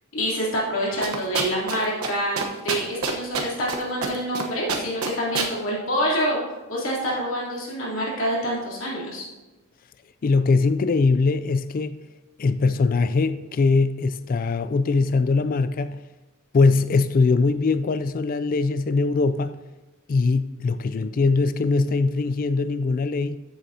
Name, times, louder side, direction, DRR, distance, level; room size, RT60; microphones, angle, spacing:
voice 1, 0.1-6.4 6.7-9.2, equal, 65° left, 3.1 m, -26 dB
sound 1, 1.0-2.1 2.4-3.8 4.0-4.4 4.7-5.5, right 5 dB, 90° right, 1.1 m, -26 dB
voice 2, 10.2-12.0 12.4-16.0 16.5-19.6 20.1-23.4, left 4 dB, 40° left, 0.3 m, -21 dB
13.5 x 7.8 x 2.8 m
head